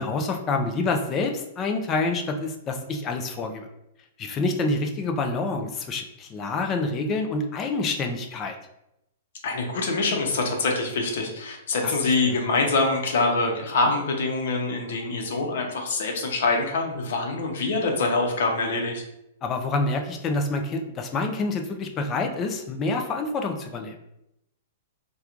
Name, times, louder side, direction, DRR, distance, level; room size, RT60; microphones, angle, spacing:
voice 1, 0.0-3.7 4.2-8.6 11.8-12.3 19.4-24.0, left 3 dB, 25° left, 4 dB, 0.4 m, -27 dB
voice 2, 9.4-19.0, left 3 dB, 70° left, 2 dB, 0.8 m, -25 dB
4.4 x 2.3 x 2.4 m, 0.84 s
hypercardioid pair, 145°, 0 cm